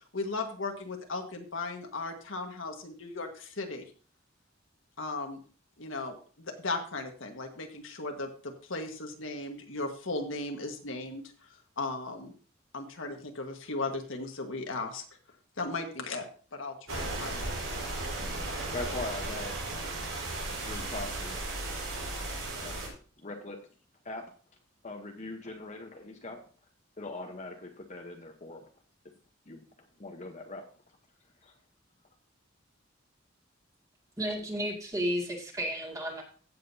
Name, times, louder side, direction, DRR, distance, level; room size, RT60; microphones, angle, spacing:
voice 1, 0.1-3.9 5.0-5.4 5.8-11.2 11.8-12.3 12.7-15.0 15.6-16.3 16.5-17.5, left 3 dB, 75° left, 4 dB, 1.6 m, -36 dB
sound 1, 16.9-22.9, right 2 dB, 85° right, 4.8 m, -35 dB
voice 2, 18.7-20.0 20.5-21.5 22.5-22.8 23.2-23.6 24.0-24.2 24.8-26.4 27.0-28.6 29.5-30.7 31.4-31.5, left 2 dB, 35° left, 2 dB, 1.1 m, -41 dB
voice 3, 34.2-36.2, equal, 20° right, -1 dB, 2.3 m, -32 dB
15.5 x 7.6 x 2.8 m, 0.40 s
head